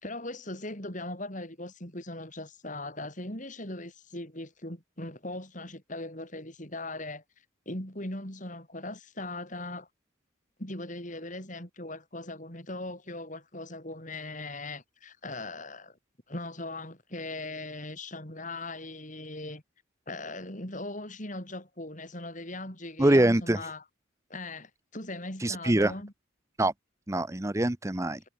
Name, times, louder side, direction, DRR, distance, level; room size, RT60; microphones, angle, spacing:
voice 1, 0.0-7.2 7.7-9.9 10.6-16.0 16.3-19.6 20.1-23.8 24.3-26.1, left 2 dB, 40° left, 5.9 m, -39 dB
voice 2, 23.0-23.7 25.4-25.9 26.6-26.7 27.1-28.2, right 1 dB, 15° right, 0.7 m, -24 dB
head